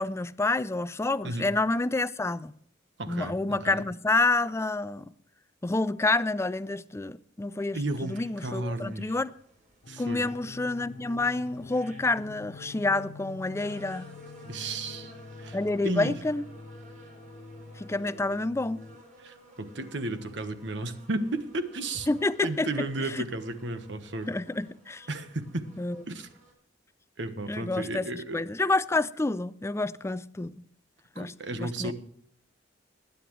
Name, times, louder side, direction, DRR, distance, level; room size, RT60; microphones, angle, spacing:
voice 1, 0.0-2.5 3.1-5.1 5.6-9.3 10.0-14.1 15.5-16.4 17.8-18.8 22.1-23.3 24.3-25.1 25.8-26.0 27.5-30.6 31.2-31.3 31.6-31.9, left 2 dB, 15° left, 0.4 m, -28 dB
voice 2, 3.0-3.8 7.7-9.1 9.9-10.3 14.5-15.1 15.4-15.6 15.8-16.1 19.2-22.1 22.4-24.3 25.1-25.7 26.1-26.3 27.2-28.4 31.2-31.9, right 2 dB, 70° right, 1.3 m, -33 dB
sound 1, 7.7-26.5, right 1 dB, 45° right, 4.8 m, -55 dB
sound 2, 9.8-19.0, left 4 dB, 55° left, 0.7 m, -46 dB
20.5 x 9.4 x 3.2 m
head